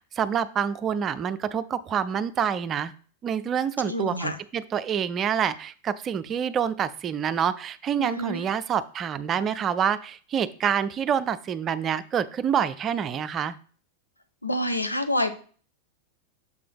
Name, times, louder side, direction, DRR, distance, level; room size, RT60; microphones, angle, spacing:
voice 1, 0.2-2.9 3.2-13.6, right 8 dB, 25° right, 14 dB, 0.4 m, -27 dB
voice 2, 3.9-4.4 8.0-8.4 14.4-15.3, left 1 dB, 85° left, 7 dB, 0.6 m, -27 dB
6.5 x 3.4 x 5.3 m, 0.42 s
figure-of-eight pair, 90°, 0 cm